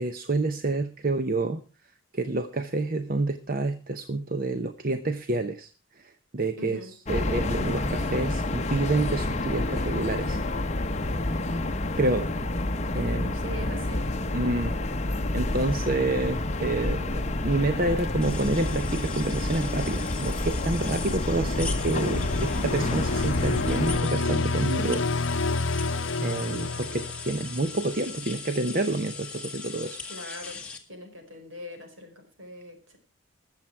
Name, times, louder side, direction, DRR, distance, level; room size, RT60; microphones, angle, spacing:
voice 1, 0.0-1.6 2.1-5.7 6.0-6.8 7.1-10.4 11.1-11.2 12.0-12.3 12.9-13.4 14.3-14.8 15.3-25.0 26.2-30.0, right 2 dB, 40° right, 9 dB, 0.7 m, -28 dB
voice 2, 6.6-6.9 13.3-14.1 30.1-30.6 30.9-33.0, left 1 dB, 65° right, 4 dB, 4.8 m, -42 dB
sound 1, 7.0-24.0, left 2 dB, 30° left, 0.9 m, -29 dB
sound 2, 18.2-30.8, left 5 dB, 5° left, 1.9 m, -40 dB
sound 3, 20.6-27.8, left 3 dB, 65° left, 0.7 m, -29 dB
21.5 x 7.5 x 4.5 m, 0.34 s
head